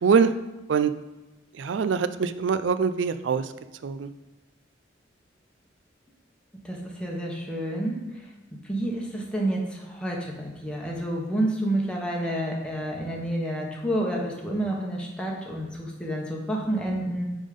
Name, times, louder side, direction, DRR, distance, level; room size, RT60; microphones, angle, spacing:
voice 1, 0.0-0.3 0.7-0.9 1.6-3.5 3.8-4.1, right 6 dB, 80° right, 12 dB, 0.4 m, -23 dB
voice 2, 6.6-7.9 8.2-17.3, right 1 dB, 5° left, -2 dB, 1.2 m, -29 dB
8.9 x 3.7 x 5.1 m, 1.1 s
head